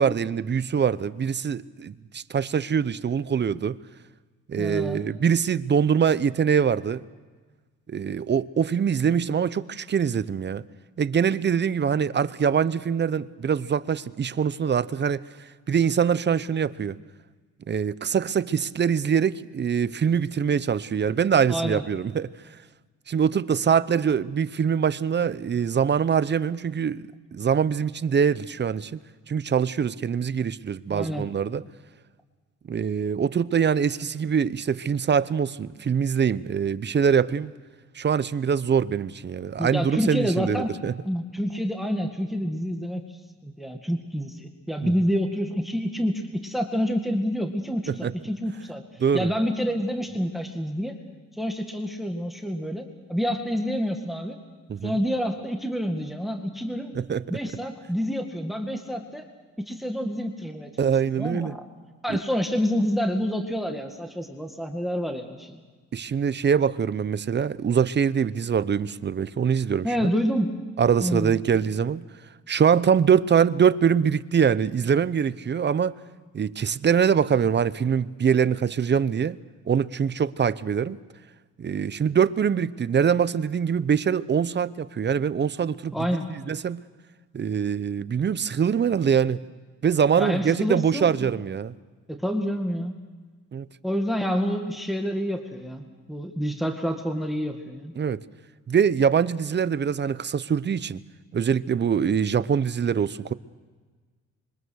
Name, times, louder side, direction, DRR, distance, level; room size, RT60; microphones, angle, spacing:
voice 1, 0.0-3.8 4.5-7.0 7.9-10.6 11.0-15.3 15.7-17.0 17.7-22.3 23.1-27.0 27.3-29.0 29.3-31.6 32.7-37.5 37.9-40.9 44.8-44.9 47.9-48.1 49.0-49.3 54.7-55.0 56.9-57.2 60.8-61.6 62.1-62.2 65.9-70.1 70.8-72.0 72.5-76.0 76.3-79.4 79.7-81.0 81.6-85.9 86.3-86.8 87.3-89.4 89.8-91.7 93.5-93.7 98.0-98.2 98.7-101.0 101.3-103.3, right 7 dB, 35° right, 0.8 m, -23 dB
voice 2, 4.6-5.0 21.5-21.8 30.9-31.3 39.6-40.7 41.1-43.0 43.4-46.1 46.4-48.8 49.1-50.9 51.4-52.8 53.1-54.4 54.8-56.9 57.3-59.2 59.7-60.9 61.2-61.6 62.0-65.6 69.8-70.6 71.0-71.4 85.9-86.3 90.2-91.3 92.1-92.9 93.8-97.9, equal, ahead, 2.1 m, -28 dB
26.0 x 23.5 x 6.4 m
cardioid pair, 90°, 30 cm